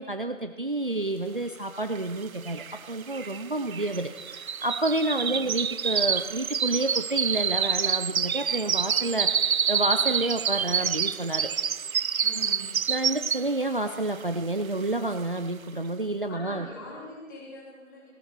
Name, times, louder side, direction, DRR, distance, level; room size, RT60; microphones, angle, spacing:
voice 1, 0.0-11.5 12.9-16.7, right 2 dB, 40° right, 8 dB, 0.6 m, -29 dB
sound 1, 1.9-2.0 2.2-13.7 14.1-14.4 14.8-14.9, right 7 dB, 80° right, 0.5 m, -27 dB
voice 2, 5.2-5.5 12.2-12.8 16.3-18.1, left 1 dB, 15° left, -4 dB, 2.7 m, -42 dB
18.0 x 17.5 x 4.6 m, 1.3 s
figure-of-eight pair, 155°, 41 cm